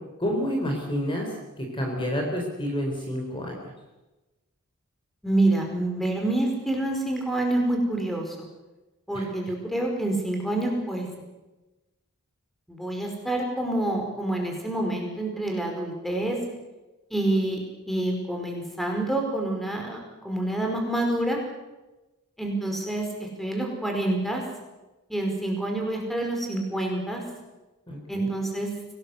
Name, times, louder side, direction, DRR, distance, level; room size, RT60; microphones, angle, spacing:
voice 1, 0.2-1.3 1.6-3.6 9.1-9.3 27.9-28.3, equal, 20° left, 1 dB, 4.0 m, -29 dB
voice 2, 5.2-8.5 9.1-11.1 12.7-16.4 17.1-17.6 17.9-20.0 20.2-21.4 22.4-23.0 23.4-24.4 25.1-27.2 28.1-28.7, right 1 dB, ahead, 1 dB, 4.9 m, -27 dB
25.0 x 18.5 x 8.2 m, 1.1 s
head